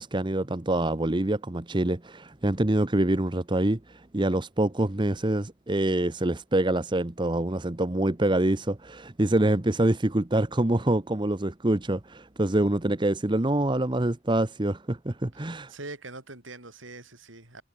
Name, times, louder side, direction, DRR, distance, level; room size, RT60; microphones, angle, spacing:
voice 1, 0.0-15.7, right 1 dB, 25° right, 0.9 m, -25 dB
voice 2, 15.3-17.6, right 2 dB, 75° right, 7.7 m, -43 dB
head